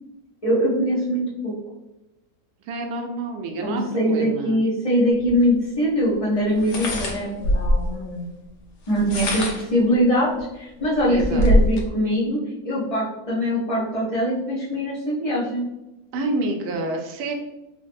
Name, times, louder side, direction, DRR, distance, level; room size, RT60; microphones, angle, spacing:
voice 1, 0.4-1.5 3.6-8.3 8.9-12.4 12.6-15.7, equal, 35° left, -9 dB, 0.6 m, -22 dB
voice 2, 2.6-4.7 11.1-11.5 16.1-17.3, right 2 dB, 80° right, 3 dB, 1.1 m, -28 dB
sound 1, 5.2-5.3 6.6-7.9 8.9-9.8 10.4-10.5 10.8-11.9, left 1 dB, 80° left, 1.3 m, -22 dB
4.0 x 2.9 x 2.5 m, 0.96 s
omnidirectional pair, 1.6 m